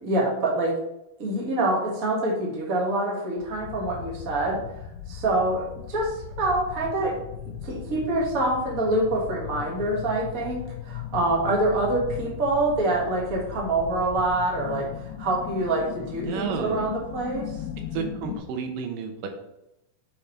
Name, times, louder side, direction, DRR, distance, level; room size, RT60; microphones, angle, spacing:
voice 1, 0.0-0.8 1.2-4.6 5.1-6.1 6.4-7.2 7.6-17.6, right 2 dB, 40° right, -2 dB, 1.3 m, -26 dB
sound 1, 3.4-18.4, left 9 dB, 80° left, 2.1 m, -38 dB
voice 2, 16.0-16.8 17.9-19.3, right 6 dB, 90° right, 4 dB, 2.6 m, -31 dB
5.5 x 5.4 x 4.4 m, 0.87 s
omnidirectional pair, 3.7 m